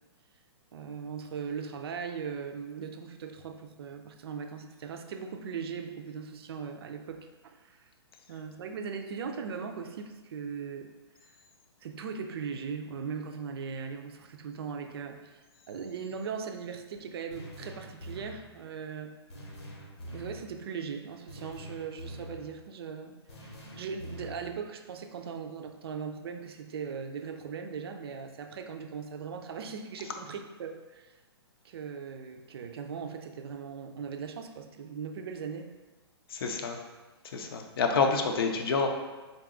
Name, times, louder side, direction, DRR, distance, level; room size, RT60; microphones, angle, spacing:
voice 1, 0.7-7.9 8.3-10.9 11.8-15.4 15.7-19.1 20.1-31.1 31.6-35.7, right 6 dB, 65° right, 5 dB, 0.4 m, -39 dB
sound 1, 17.3-18.5 19.3-20.5 21.3-22.5 23.3-24.5, equal, 80° left, 1.0 m, -45 dB
voice 2, 36.3-36.8 37.3-38.9, left 5 dB, 60° left, 4 dB, 0.5 m, -28 dB
3.9 x 2.3 x 3.7 m, 1.2 s
hypercardioid pair, 145°, 14 cm